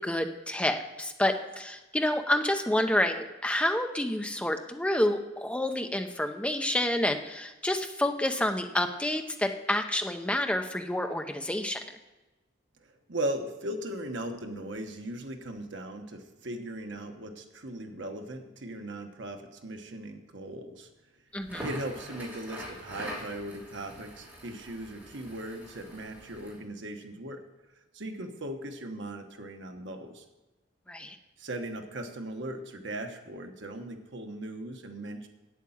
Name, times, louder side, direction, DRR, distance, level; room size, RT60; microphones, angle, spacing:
voice 1, 0.0-11.8 21.3-21.7 30.9-31.2, left 1 dB, 5° left, 5 dB, 0.6 m, -29 dB
voice 2, 13.1-20.9 21.6-27.4 27.9-30.2 31.4-35.3, right 1 dB, 70° right, 5 dB, 1.2 m, -38 dB
Crackle, 21.4-26.6, right 1 dB, 10° right, 2.9 m, -44 dB
8.9 x 8.4 x 7.2 m, 1.1 s
head